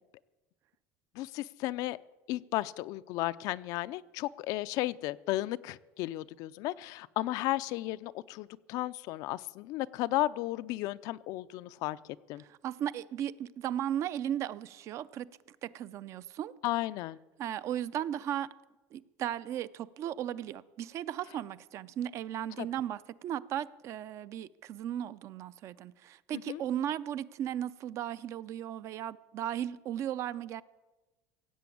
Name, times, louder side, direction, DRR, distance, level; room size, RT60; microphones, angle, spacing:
voice 1, 1.2-2.0 2.3-12.0 12.3-12.4 16.6-17.2 22.6-22.7 26.3-26.6, left 17 dB, 60° left, 15 dB, 0.4 m, -34 dB
voice 2, 12.4-16.5 17.4-18.5 18.9-30.6, right 10 dB, 45° right, 16 dB, 0.5 m, -36 dB
16.5 x 7.8 x 8.4 m, 1.1 s
cardioid pair, 140°, 7 cm